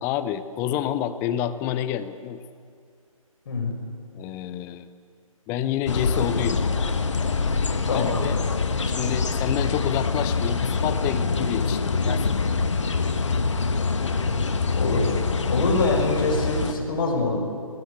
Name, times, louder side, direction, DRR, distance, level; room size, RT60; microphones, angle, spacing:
voice 1, 0.0-2.4 4.1-4.9 5.5-6.6 7.9-8.4 8.8-12.3, left 11 dB, 15° left, 13 dB, 0.8 m, -28 dB
sound 1, 5.9-16.7, left 4 dB, 55° left, 1.9 m, -25 dB
voice 2, 7.9-8.2 14.7-15.2 15.5-17.4, left 3 dB, 40° left, 1 dB, 6.7 m, -24 dB
29.5 x 20.0 x 8.5 m, 2.3 s
figure-of-eight pair, 145°, 18 cm